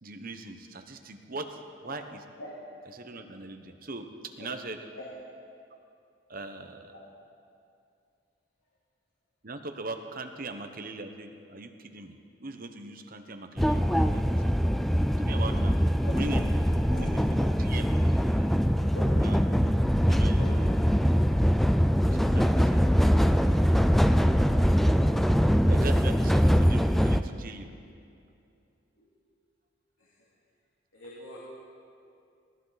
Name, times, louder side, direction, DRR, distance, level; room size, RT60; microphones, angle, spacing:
voice 1, 0.0-2.2 2.9-4.8 6.3-6.9 9.4-14.6 15.2-15.8 16.2-16.7 17.0-17.9 19.2-19.4 20.1-20.4 22.0-22.9 25.7-27.7, right 2 dB, 45° right, 6 dB, 1.1 m, -40 dB
sound 1, 13.6-27.2, equal, ahead, 0.3 m, -23 dB
voice 2, 18.7-19.2 20.4-20.6 28.9-29.1 30.0-30.3 30.9-31.4, left 2 dB, 85° left, -6 dB, 2.9 m, -42 dB
19.5 x 17.0 x 4.2 m, 2.5 s
head